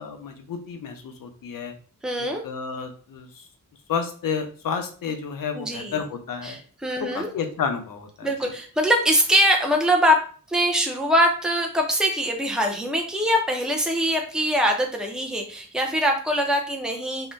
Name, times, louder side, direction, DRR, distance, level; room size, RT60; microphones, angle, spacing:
voice 1, 0.0-1.7 2.2-3.5 3.9-6.6 7.0-8.5, left 6 dB, 75° left, 5 dB, 0.6 m, -31 dB
voice 2, 2.0-2.4 5.5-6.0 6.4-7.3 8.2-10.2 10.5-17.3, equal, ahead, 1 dB, 0.5 m, -23 dB
3.7 x 2.1 x 2.5 m, 0.40 s
wide cardioid pair, 155°, 34 cm